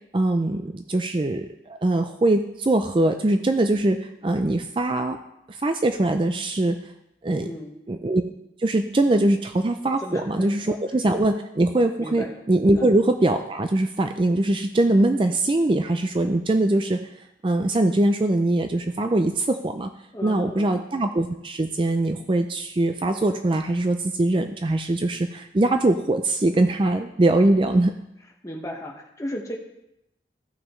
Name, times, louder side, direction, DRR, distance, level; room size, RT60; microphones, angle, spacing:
voice 1, 0.0-5.2 5.5-6.8 7.2-7.5 7.9-8.2 8.6-17.0 17.4-19.9 20.2-27.9, right 2 dB, 30° right, 7 dB, 0.4 m, -22 dB
voice 2, 7.4-7.7 10.0-10.8 12.0-12.3 12.7-12.9 20.1-20.7 28.4-29.6, left 1 dB, 20° left, 0 dB, 1.3 m, -35 dB
15.5 x 6.0 x 3.1 m, 0.83 s
head